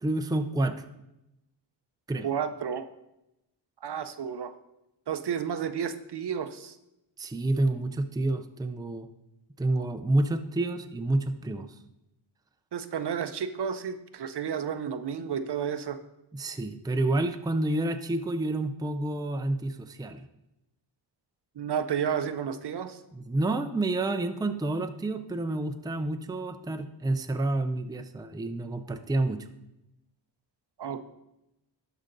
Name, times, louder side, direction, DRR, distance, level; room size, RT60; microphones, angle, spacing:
voice 1, 0.0-0.9 2.1-2.3 7.2-9.1 9.6-11.7 16.3-20.2 23.1-29.5, right 2 dB, 10° right, 7 dB, 0.5 m, -29 dB
voice 2, 2.2-2.9 3.8-4.5 5.1-6.8 12.7-16.0 21.6-23.0 30.8-31.1, right 7 dB, 60° right, 11 dB, 0.6 m, -31 dB
12.0 x 5.0 x 3.9 m, 0.89 s
wide cardioid pair, 95°, 46 cm